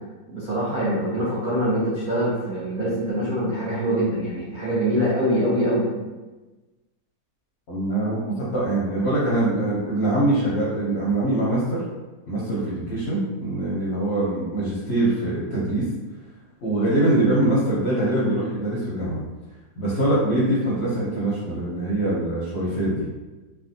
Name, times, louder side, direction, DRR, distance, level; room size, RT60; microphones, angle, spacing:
voice 1, 0.3-5.9, equal, 50° right, -9 dB, 0.6 m, -24 dB
voice 2, 7.7-11.8 12.3-15.9 16.6-19.2 19.8-23.0, right 1 dB, 50° left, -7 dB, 0.8 m, -23 dB
3.3 x 2.3 x 2.6 m, 1.2 s
omnidirectional pair, 1.8 m